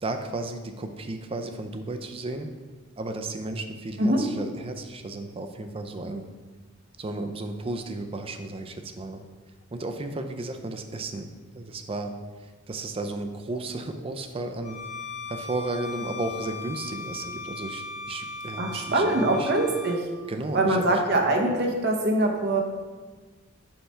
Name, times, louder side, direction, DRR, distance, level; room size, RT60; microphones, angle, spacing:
voice 1, 0.0-2.5 3.0-6.3 7.0-9.2 9.7-11.3 11.5-14.8 15.3-19.5 20.3-21.0, right 2 dB, 25° right, 7 dB, 0.4 m, -34 dB
Bowed string instrument, 14.6-20.0, left 3 dB, 30° left, 0.7 m, -38 dB
voice 2, 18.6-20.1 20.5-22.6, right 1 dB, 50° right, 2 dB, 0.8 m, -23 dB
5.6 x 3.3 x 5.5 m, 1.4 s
head